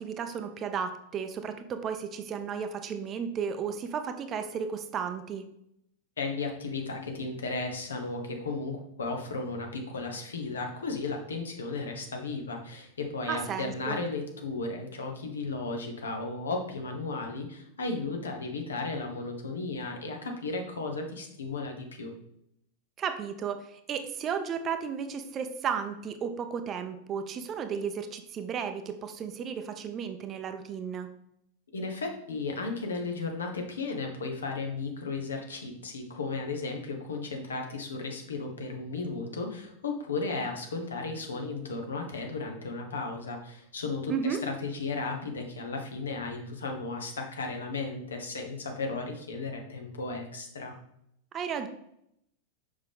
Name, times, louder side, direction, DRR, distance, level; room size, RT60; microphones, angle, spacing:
voice 1, 0.0-5.4 13.3-14.0 23.0-31.1 44.1-44.4 51.3-51.7, right 7 dB, 30° right, 8 dB, 0.7 m, -34 dB
voice 2, 6.2-22.1 31.7-50.7, left 3 dB, 70° left, 3 dB, 1.3 m, -35 dB
6.8 x 5.7 x 3.6 m, 0.75 s
figure-of-eight pair, 90°, 0 cm